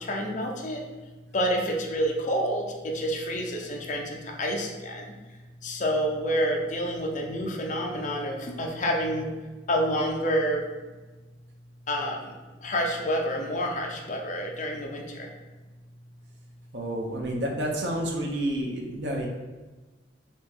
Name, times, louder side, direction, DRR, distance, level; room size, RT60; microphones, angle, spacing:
voice 1, 0.1-0.8 1.3-4.0 4.4-5.0 5.6-9.3 9.7-10.6 11.9-12.2 12.6-15.0, equal, 45° left, 0 dB, 0.6 m, -28 dB
voice 2, 16.7-19.3, right 1 dB, 75° right, 0 dB, 0.7 m, -29 dB
4.1 x 2.9 x 3.7 m, 1.2 s
head